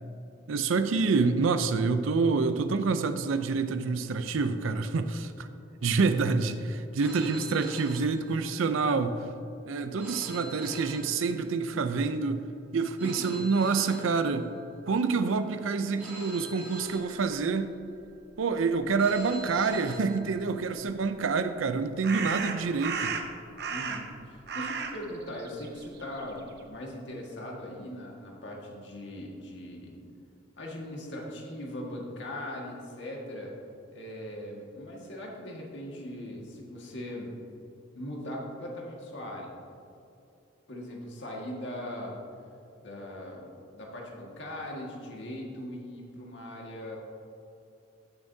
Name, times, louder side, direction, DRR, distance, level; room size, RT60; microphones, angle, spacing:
voice 1, 0.5-5.5 5.8-9.3 9.7-12.4 12.7-14.5 14.8-17.7 18.4-23.1, right 4 dB, 85° right, 9 dB, 0.5 m, -27 dB
Telephone, 7.0-8.9 10.0-11.9 13.0-14.9 16.0-17.8 19.0-20.8, right 1 dB, 10° right, 1.8 m, -45 dB
voice 2, 13.0-13.3 23.7-30.0 30.6-33.5 33.9-37.3 37.9-39.5 40.7-42.2 42.8-47.0, left 1 dB, 65° left, -2 dB, 1.7 m, -40 dB
sound 1, 20.9-21.0 22.0-24.2 24.5-26.6, right 5 dB, 55° right, 0.8 m, -34 dB
15.0 x 7.0 x 2.7 m, 2.7 s
head